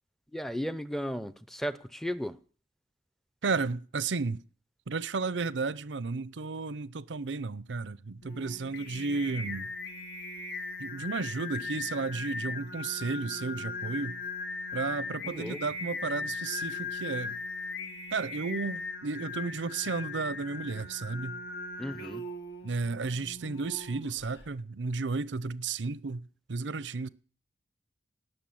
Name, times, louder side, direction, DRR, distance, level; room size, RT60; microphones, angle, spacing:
voice 1, 0.3-2.4 15.2-15.6 21.8-22.2, equal, ahead, 0.6 m, -35 dB
voice 2, 3.4-4.4 4.9-9.7 10.8-14.2 14.7-17.4 18.1-21.4 22.6-27.1, right 4 dB, 80° right, 0.6 m, -33 dB
Singing, 8.2-24.5, left 3 dB, 65° left, 1.9 m, -39 dB
18.0 x 6.8 x 8.6 m
head